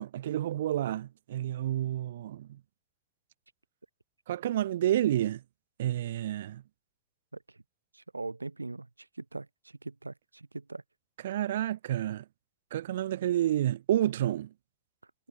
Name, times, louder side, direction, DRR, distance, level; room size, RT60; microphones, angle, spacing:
voice 1, 0.0-2.6 4.3-5.4 5.8-6.6 11.2-12.2 12.7-14.5, right 12 dB, 60° right, 2.1 m, -29 dB
voice 2, 7.9-8.9 9.2-9.5 9.8-10.8, right 3 dB, 80° right, 2.8 m, -40 dB
figure-of-eight pair, 90°, 0 cm